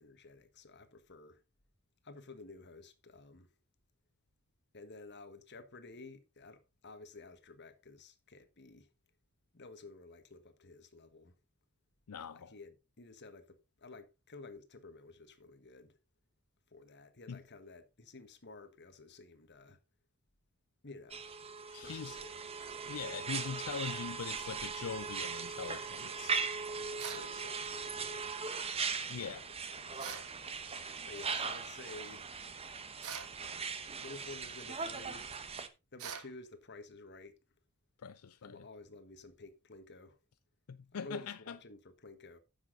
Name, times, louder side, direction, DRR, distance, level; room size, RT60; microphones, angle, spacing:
voice 1, 0.0-1.4 2.0-3.5 4.7-8.9 9.5-11.3 12.3-16.0 16.7-19.8 20.8-21.2 21.8-22.4 26.0-26.4 26.8-28.4 29.2-29.4 29.7-30.3 31.0-32.3 34.0-35.3 35.9-37.4 38.4-40.2 40.9-42.4, left 3 dB, 50° left, 1.5 m, -52 dB
voice 2, 12.1-12.5 17.3-17.4 21.7-22.2 22.9-26.5 29.1-29.5 38.0-38.6 40.7-41.6, left 6 dB, 75° left, 0.5 m, -42 dB
sound 1, 21.1-35.7, right 5 dB, 25° right, 0.9 m, -39 dB
sound 2, 27.0-27.3 30.0-30.3 33.0-33.4 36.0-36.3, right 7 dB, 80° right, 1.4 m, -43 dB
10.0 x 7.3 x 3.9 m
head